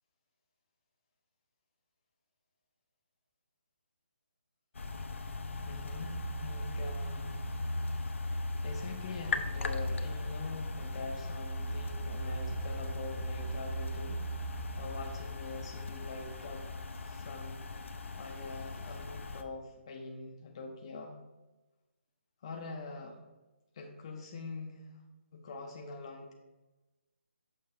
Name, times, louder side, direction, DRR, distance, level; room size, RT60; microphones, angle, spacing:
sound 1, 4.8-19.4, left 1 dB, 80° left, 0.6 m, -37 dB
voice 1, 5.6-7.4 8.1-8.2 8.6-14.3 14.8-16.7 17.0-17.7 18.2-21.2 22.4-23.2 23.7-25.0 25.3-26.3, left 3 dB, 25° left, 1 dB, 0.5 m, -44 dB
6.6 x 2.8 x 5.3 m, 1.1 s
hypercardioid pair, 175°, 7 cm